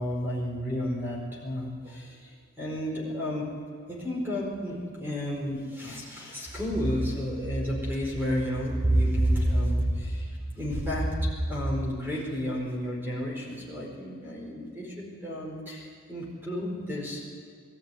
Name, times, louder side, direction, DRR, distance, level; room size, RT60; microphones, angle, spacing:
voice 1, 0.0-3.5 3.9-11.2 11.5-17.2, equal, 10° right, -4 dB, 4.7 m, -30 dB
21.0 x 13.5 x 9.5 m, 2.1 s
head